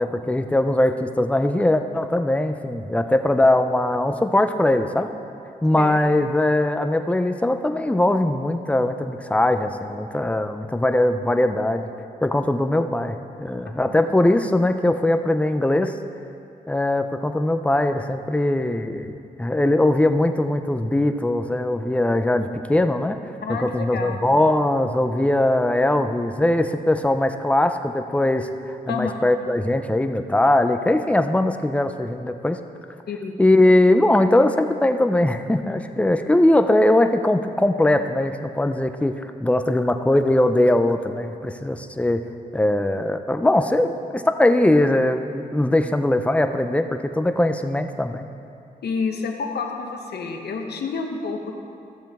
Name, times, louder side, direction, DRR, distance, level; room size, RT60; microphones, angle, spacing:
voice 1, 0.0-5.1 5.6-11.9 12.2-16.0 16.7-23.2 23.6-32.6 33.4-42.2 42.5-48.2, left 1 dB, 10° left, 7 dB, 0.5 m, -20 dB
voice 2, 23.4-24.3 28.9-29.2 33.1-33.3 48.8-51.5, left 4 dB, 80° left, 3 dB, 1.0 m, -29 dB
13.5 x 7.4 x 3.6 m, 2.6 s
cardioid pair, 75°, 17 cm